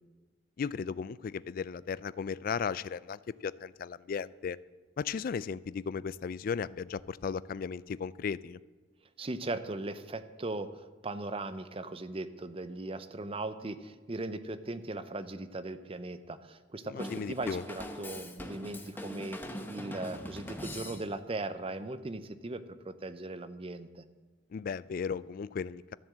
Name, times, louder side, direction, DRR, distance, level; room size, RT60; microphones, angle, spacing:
voice 1, 0.6-4.6 5.0-8.6 16.8-17.6 24.5-25.9, left 6 dB, 50° left, 18 dB, 0.3 m, -36 dB
voice 2, 9.2-24.0, right 2 dB, 30° right, 12 dB, 0.6 m, -38 dB
Drum kit / Drum, 17.0-21.4, left 1 dB, 10° left, 1.0 m, -42 dB
13.0 x 7.4 x 7.5 m, 1.3 s
head